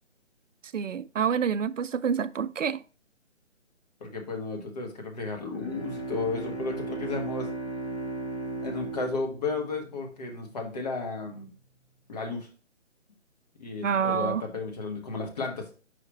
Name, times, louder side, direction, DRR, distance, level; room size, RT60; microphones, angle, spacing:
voice 1, 0.7-2.8 13.8-14.4, right 7 dB, 85° right, 0.5 m, -27 dB
voice 2, 4.0-7.5 8.6-11.5 12.1-12.5 13.6-15.7, left 3 dB, 35° left, 1.2 m, -33 dB
Bowed string instrument, 5.5-10.6, right 2 dB, 60° left, 1.4 m, -36 dB
5.0 x 4.7 x 4.1 m
figure-of-eight pair, 150°, 37 cm